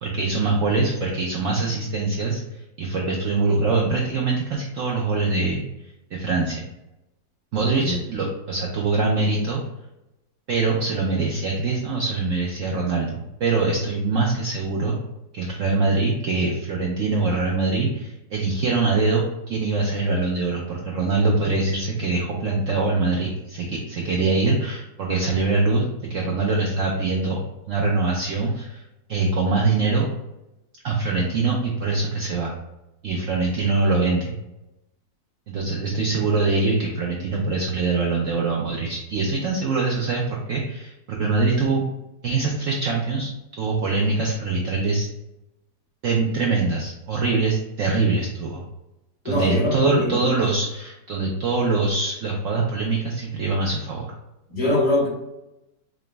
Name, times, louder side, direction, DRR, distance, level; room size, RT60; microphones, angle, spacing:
voice 1, 0.0-5.6 6.1-6.6 7.5-9.6 10.5-14.9 15.3-19.2 19.5-27.4 27.7-28.8 29.1-30.1 30.8-32.5 33.0-34.3 35.5-41.9 42.2-43.3 43.6-45.1 46.0-48.6 49.2-54.1, right 3 dB, 75° right, -1 dB, 0.7 m, -23 dB
voice 2, 7.5-8.0 49.2-50.3 54.5-55.1, left 1 dB, 65° left, -7 dB, 2.2 m, -22 dB
4.8 x 2.0 x 3.3 m, 0.93 s
omnidirectional pair, 1.9 m